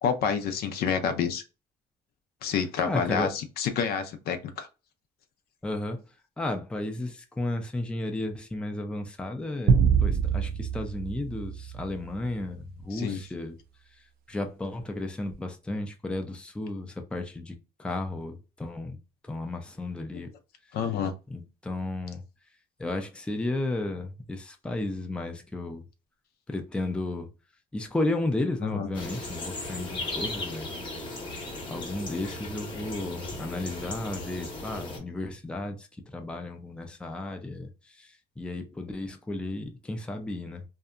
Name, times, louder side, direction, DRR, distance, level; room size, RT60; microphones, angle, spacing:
voice 1, 0.0-1.4 2.4-4.7 12.9-13.2 20.7-21.1 28.7-28.9, left 7 dB, 65° left, 0.5 m, -28 dB
voice 2, 2.8-3.3 5.6-6.0 6.4-13.6 14.3-19.0 19.2-20.3 21.3-22.2 22.8-25.8 26.5-27.3 27.7-30.7 31.7-35.9 36.1-40.6, left 2 dB, 5° left, 0.4 m, -33 dB
sound 1, 9.7-12.3, right 6 dB, 65° right, 0.4 m, -25 dB
sound 2, 28.9-35.0, left 2 dB, 30° left, 0.9 m, -37 dB
2.7 x 2.1 x 2.4 m
cardioid pair, 110°, 17 cm